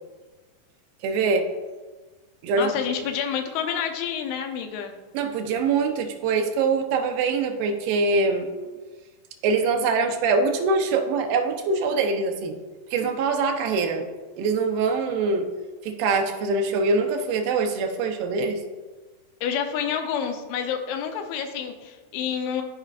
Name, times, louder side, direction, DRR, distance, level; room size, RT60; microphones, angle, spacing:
voice 1, 1.0-1.5 2.4-3.0 5.1-8.5 9.4-12.6 12.9-14.1 14.4-15.5 15.8-18.6, right 4 dB, 80° right, 5 dB, 2.3 m, -23 dB
voice 2, 2.5-4.9 19.4-22.6, left 8 dB, 90° left, 5 dB, 2.7 m, -28 dB
13.0 x 4.8 x 2.4 m, 1.3 s
omnidirectional pair, 4.4 m